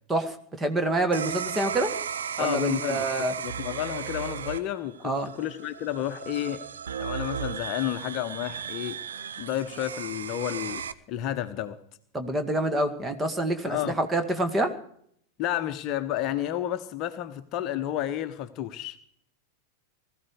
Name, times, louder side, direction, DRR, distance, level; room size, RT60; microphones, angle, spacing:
voice 1, 0.1-1.9 2.4-3.3 5.0-5.3 12.1-14.7, right 2 dB, 15° right, 2.1 m, -27 dB
sound 1, 1.1-10.9, right 7 dB, 65° right, 0.8 m, -35 dB
voice 2, 2.4-3.1 3.4-6.6 7.0-9.0 9.4-10.8 11.1-11.8 13.6-14.0 15.4-19.0, left 12 dB, 40° left, 1.0 m, -31 dB
20.0 x 14.0 x 4.9 m
figure-of-eight pair, 90°, 0 cm